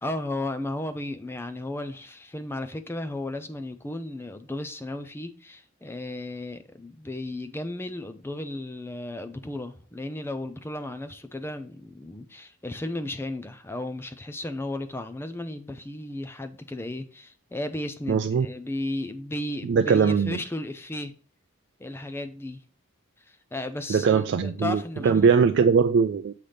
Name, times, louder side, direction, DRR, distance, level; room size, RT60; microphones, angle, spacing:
voice 1, 0.0-21.1 21.8-22.6 23.3-25.3, left 1 dB, 10° left, 0.4 m, -34 dB
voice 2, 18.1-18.5 19.7-20.4 23.9-26.3, right 5 dB, 55° right, 0.3 m, -21 dB
6.4 x 3.4 x 5.6 m
head